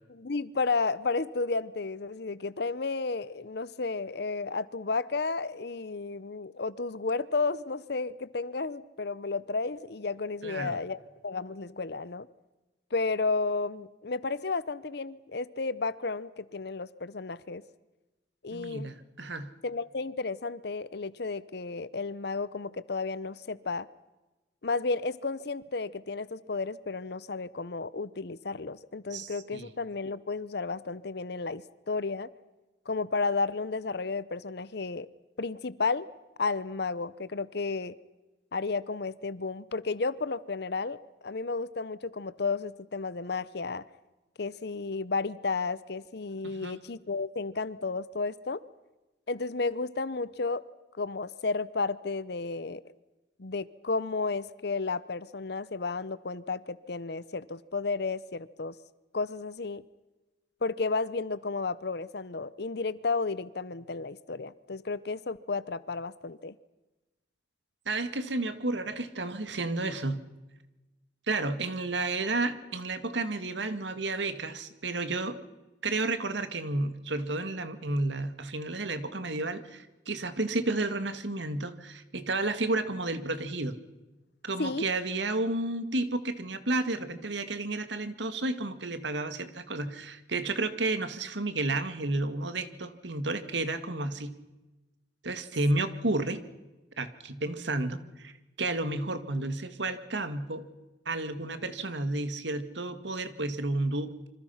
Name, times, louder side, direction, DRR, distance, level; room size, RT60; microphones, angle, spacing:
voice 1, 0.1-11.0 11.2-12.3 12.9-17.6 18.4-18.9 19.6-23.9 24.6-32.3 32.9-35.1 35.4-36.1 36.4-37.9 38.5-41.0 41.2-43.8 44.4-48.6 49.3-50.6 51.0-52.8 53.4-58.8 59.1-59.8 60.6-66.5 84.6-84.9, left 4 dB, 60° left, 17 dB, 0.8 m, -32 dB
voice 2, 10.4-10.8 18.5-19.5 29.1-29.7 46.6-46.8 67.9-70.2 71.3-75.4 75.8-83.8 84.4-94.4 95.2-96.4 97.0-98.3 98.6-100.6 101.1-104.3, right 2 dB, 75° right, 11 dB, 2.0 m, -31 dB
27.5 x 25.5 x 5.8 m, 1.1 s
head